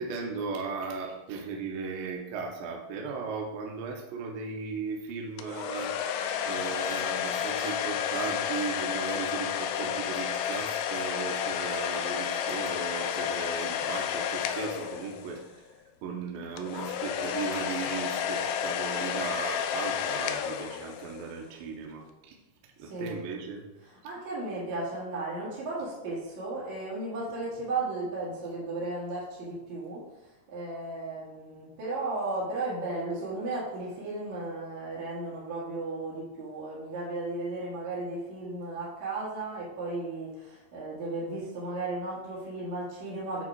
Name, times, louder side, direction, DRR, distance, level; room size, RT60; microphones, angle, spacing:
voice 1, 0.0-22.4 22.6-23.6, right 5 dB, 75° right, 0 dB, 2.3 m, -37 dB
sound 1, 5.4-15.5 16.6-21.3, left 8 dB, 85° left, 2.5 m, -31 dB
voice 2, 22.8-23.2 23.8-30.0 30.5-43.4, right 2 dB, 55° right, -7 dB, 2.7 m, -35 dB
8.8 x 3.5 x 4.5 m, 1.0 s
omnidirectional pair, 4.7 m